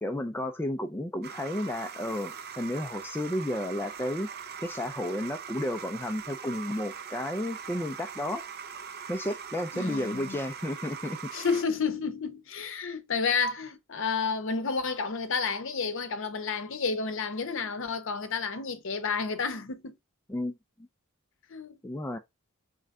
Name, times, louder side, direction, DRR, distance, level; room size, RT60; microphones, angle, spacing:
voice 1, 0.0-4.3 4.6-8.4 9.1-11.3 20.3-20.5 20.8-20.9 21.8-22.2, left 1 dB, 10° left, 0.4 m, -32 dB
sound 1, 1.2-11.6, right 7 dB, 50° right, 0.5 m, -41 dB
voice 2, 9.7-10.4 11.3-19.9 21.5-21.7, left 5 dB, 65° left, 0.8 m, -31 dB
3.8 x 3.3 x 3.4 m
head